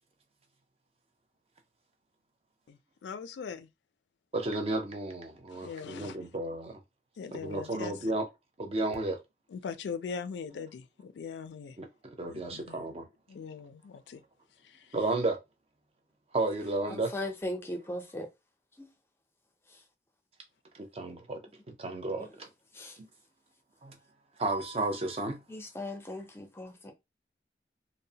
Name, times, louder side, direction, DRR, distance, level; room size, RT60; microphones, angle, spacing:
voice 1, 2.7-3.7 5.5-6.2 7.2-7.9 9.5-11.8 12.3-12.8 13.3-14.2 14.6-14.9, left 6 dB, 80° left, 0.3 m, -41 dB
voice 2, 4.3-6.8 7.3-8.3 8.6-9.2 11.8-13.1 14.9-15.4 16.3-17.1 20.7-21.4 21.7-22.5 23.8-24.0 24.4-25.4, right 2 dB, 35° right, 0.5 m, -33 dB
voice 3, 16.9-18.3 18.8-18.9 19.7-19.8 22.7-23.0 25.5-26.9, left 1 dB, 15° left, 0.5 m, -38 dB
2.7 x 2.0 x 2.7 m
head